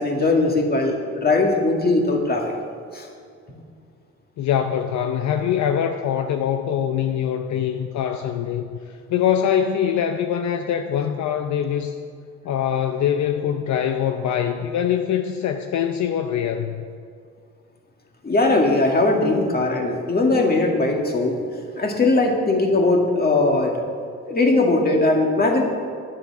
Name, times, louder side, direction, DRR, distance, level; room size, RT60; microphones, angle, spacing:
voice 1, 0.0-2.4 2.9-3.1 18.2-21.4 21.8-23.8 24.2-25.6, left 2 dB, 30° left, 1 dB, 2.0 m, -19 dB
voice 2, 4.4-12.0 12.4-16.7, left 9 dB, 70° left, 6 dB, 0.7 m, -23 dB
10.0 x 7.7 x 7.0 m, 2.3 s
cardioid pair, 90°, 30 cm